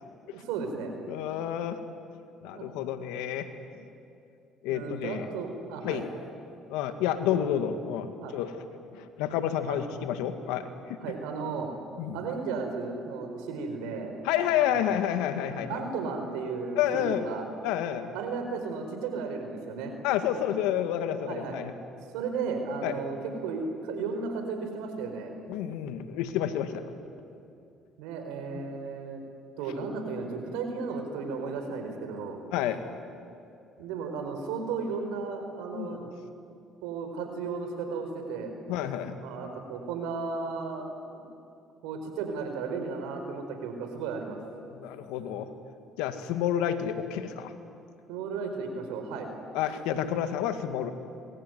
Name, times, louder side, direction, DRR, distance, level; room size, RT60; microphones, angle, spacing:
voice 1, 0.2-0.9 2.5-2.7 4.7-6.0 8.2-8.3 9.7-9.8 11.0-11.7 12.1-14.2 14.7-15.0 15.5-17.4 18.1-19.9 21.3-21.6 22.1-25.3 28.0-29.2 29.6-32.4 33.8-36.0 36.8-38.5 39.2-41.2 41.8-44.4 48.1-49.3, right 4 dB, 85° right, 5 dB, 4.6 m, -34 dB
voice 2, 1.1-1.8 2.4-3.5 3.7-3.9 4.6-5.3 5.8-6.1 6.7-8.6 8.9-11.0 12.0-12.2 14.2-15.8 16.8-17.3 17.6-18.1 20.0-21.7 22.8-23.0 25.5-26.8 28.5-28.7 32.5-32.8 35.7-36.1 38.7-39.1 44.7-45.5 46.0-47.5 49.5-50.9, left 10 dB, 80° left, 8 dB, 2.0 m, -29 dB
27.5 x 23.0 x 9.4 m, 2.6 s
supercardioid pair, 70°, 0 cm